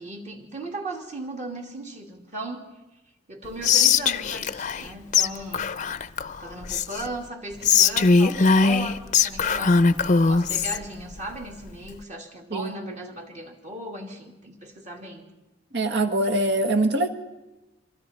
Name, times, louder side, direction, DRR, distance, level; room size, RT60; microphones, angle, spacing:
voice 1, 0.0-2.6 3.3-5.7 6.4-9.8 10.2-15.2, right 1 dB, 40° right, 1 dB, 2.7 m, -37 dB
Whispering, 3.6-4.9 5.1-5.3 5.5-7.1 7.6-10.8, left 5 dB, 40° left, 0.6 m, -20 dB
voice 2, 12.5-12.9 15.7-17.1, right 2 dB, 60° right, 7 dB, 1.6 m, -23 dB
27.0 x 24.5 x 4.4 m, 1.0 s
head